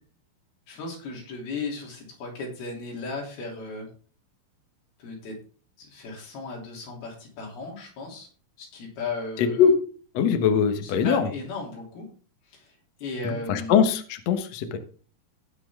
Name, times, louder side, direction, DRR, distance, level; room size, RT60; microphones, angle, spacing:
voice 1, 0.7-3.9 5.0-5.3 5.8-8.3 8.6-9.7 10.8-12.1 12.5-12.7 13.0-13.8, left 3 dB, 80° left, -1 dB, 5.1 m, -36 dB
voice 2, 9.4-9.8 10.1-11.3 13.2-14.8, left 7 dB, 65° left, 7 dB, 1.8 m, -22 dB
18.0 x 6.1 x 3.6 m, 0.41 s
omnidirectional pair, 4.4 m